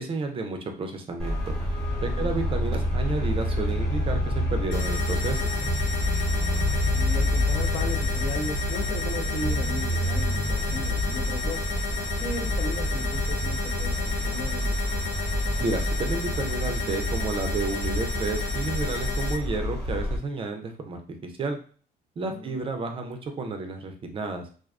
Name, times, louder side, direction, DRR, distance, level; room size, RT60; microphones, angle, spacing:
voice 1, 0.0-1.3 2.0-5.4 15.6-21.6 22.2-24.5, right 3 dB, 30° right, 5 dB, 0.4 m, -31 dB
Traffic noise roadway noise, 1.2-20.2, left 1 dB, 5° left, 1.1 m, -28 dB
voice 2, 2.0-2.3 6.3-6.6 6.9-11.6 12.2-15.0 22.3-22.6, left 2 dB, 45° left, 5 dB, 0.5 m, -36 dB
sound 1, 4.7-19.3, left 4 dB, 75° left, 0.8 m, -33 dB
2.4 x 2.2 x 2.4 m, 0.41 s
cardioid pair, 110°, 17 cm